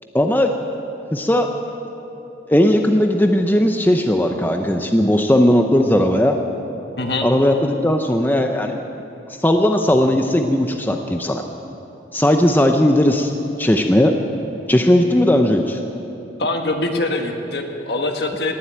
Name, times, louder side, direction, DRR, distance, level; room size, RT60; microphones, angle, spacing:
voice 1, 0.1-0.5 1.1-1.5 2.5-6.4 7.2-8.8 9.4-11.4 12.1-13.3 13.6-14.2 14.7-15.8, left 1 dB, 10° left, 4 dB, 0.6 m, -17 dB
voice 2, 16.4-18.5, left 2 dB, 65° left, 3 dB, 1.5 m, -23 dB
18.5 x 7.8 x 9.1 m, 2.9 s
head